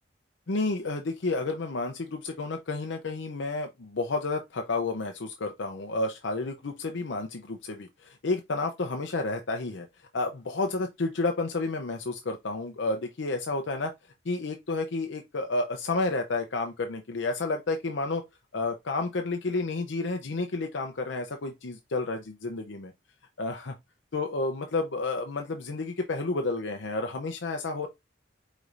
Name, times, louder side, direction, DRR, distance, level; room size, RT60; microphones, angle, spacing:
voice 1, 0.5-9.9 10.1-13.9 14.2-18.2 18.5-22.9 23.4-23.7 24.1-27.9, left 3 dB, 75° left, 0.6 m, -31 dB
4.8 x 4.2 x 2.5 m
head